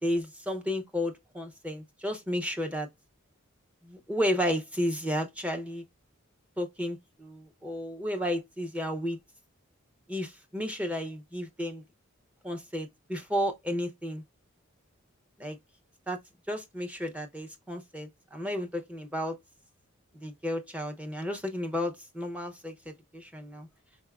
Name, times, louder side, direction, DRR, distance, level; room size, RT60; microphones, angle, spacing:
voice 1, 0.0-2.9 3.8-5.8 6.6-9.2 10.1-11.8 12.4-14.2 15.4-15.6 16.1-16.2 16.5-19.4 20.1-23.7, equal, 5° right, 0.6 m, -32 dB
4.6 x 3.5 x 2.3 m
head